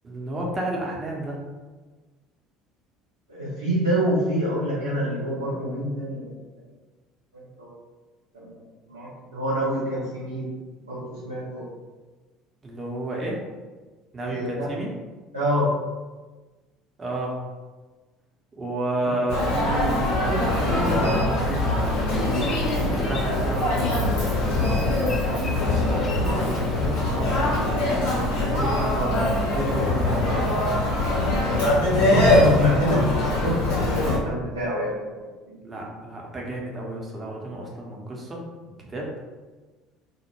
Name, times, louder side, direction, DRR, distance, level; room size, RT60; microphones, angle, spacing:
voice 1, 0.0-1.4 12.6-13.4 14.1-14.9 17.0-17.4 18.6-21.6 22.9-24.1 26.2-30.7 35.6-38.4 38.7-39.1, right 1 dB, 25° right, -2 dB, 0.7 m, -31 dB
voice 2, 3.3-6.3 7.6-7.7 8.3-8.6 8.9-10.5 10.8-11.6 14.2-14.7 15.3-15.7 19.0-19.2 22.2-22.4 32.0-35.1 35.5-35.6, equal, 80° right, -10 dB, 0.6 m, -26 dB
Human voice, 19.3-34.2, left 1 dB, 65° left, 0.7 m, -23 dB
Boat Water vehicle, 20.1-27.2, left 3 dB, 30° left, 0.4 m, -36 dB
2.1 x 2.1 x 3.0 m, 1.3 s
figure-of-eight pair, 60°, 0 cm